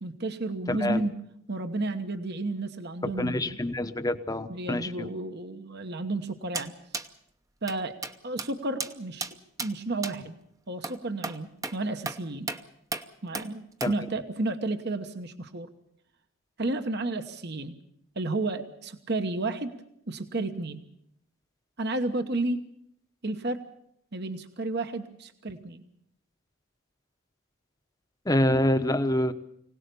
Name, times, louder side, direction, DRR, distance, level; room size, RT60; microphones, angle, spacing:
voice 1, 0.0-1.2 1.5-3.6 4.5-6.7 7.6-8.0 8.2-9.3 9.6-10.3 10.7-12.5 13.2-15.7 16.6-17.8 18.2-19.7 20.1-20.8 21.8-22.6 23.2-23.6 24.1-25.8, right 2 dB, 50° right, 8 dB, 1.2 m, -32 dB
voice 2, 0.7-1.0 3.0-5.1 13.8-13.9 28.3-29.3, left 1 dB, 15° left, 9 dB, 1.0 m, -26 dB
sound 1, 6.5-6.7 6.9-7.1 7.7-7.8 8.0-8.1 8.4-8.5 8.8-8.9 9.2-9.3 9.6-9.7 10.0-10.1 10.8-11.0 11.2-11.4 11.6-11.8 12.1-12.2 12.5-12.6 12.9-13.0 13.3-13.5 13.8-13.9, right 3 dB, 15° right, 0.8 m, -33 dB
25.0 x 18.0 x 6.9 m, 0.72 s
head